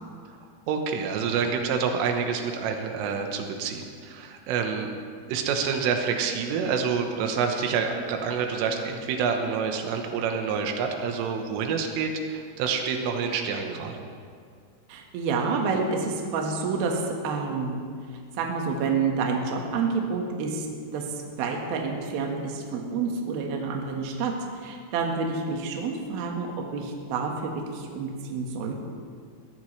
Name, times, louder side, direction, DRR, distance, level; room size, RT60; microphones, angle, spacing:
voice 1, 0.7-4.9 5.3-14.0, right 6 dB, 85° right, 4 dB, 3.7 m, -27 dB
voice 2, 14.9-17.9 18.4-20.7 20.9-24.3 24.6-28.8, right 4 dB, 60° right, 1 dB, 2.9 m, -28 dB
22.0 x 16.0 x 3.3 m, 2.2 s
omnidirectional pair, 5.6 m